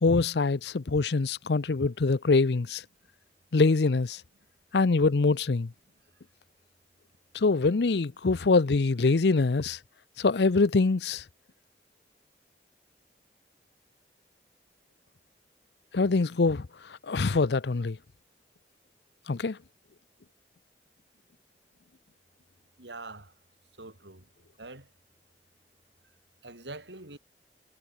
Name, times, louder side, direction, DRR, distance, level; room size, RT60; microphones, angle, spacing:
voice 1, 0.0-2.8 3.5-4.2 4.7-5.7 7.3-9.8 10.2-11.2 15.9-18.0 19.3-19.6, left 3 dB, 75° left, 0.6 m, -24 dB
voice 2, 22.8-23.3 23.8-24.3 24.6-24.9 26.4-27.2, right 2 dB, 85° right, 6.6 m, -44 dB
head